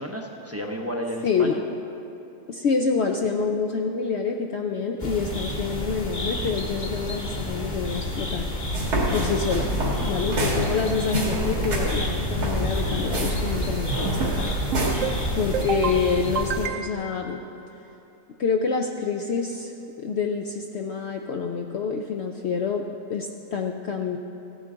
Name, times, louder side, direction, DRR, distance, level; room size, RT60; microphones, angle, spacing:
voice 1, 0.0-1.6, equal, 15° right, 0 dB, 0.5 m, -33 dB
voice 2, 1.2-1.6 2.5-8.5 9.1-9.7 10.0-14.5 15.3-17.4 18.4-22.8 23.1-24.2, left 5 dB, 65° left, 3 dB, 0.6 m, -27 dB
sound 1, 5.0-16.7, left 1 dB, 35° left, 1.2 m, -30 dB
sound 2, 8.6-15.6, right 1 dB, 90° right, 2.3 m, -27 dB
sound 3, 13.9-14.4 14.7-15.2 15.5-16.0 16.3-17.1, right 7 dB, 65° right, 0.9 m, -29 dB
15.0 x 9.6 x 3.7 m, 2.9 s
omnidirectional pair, 1.6 m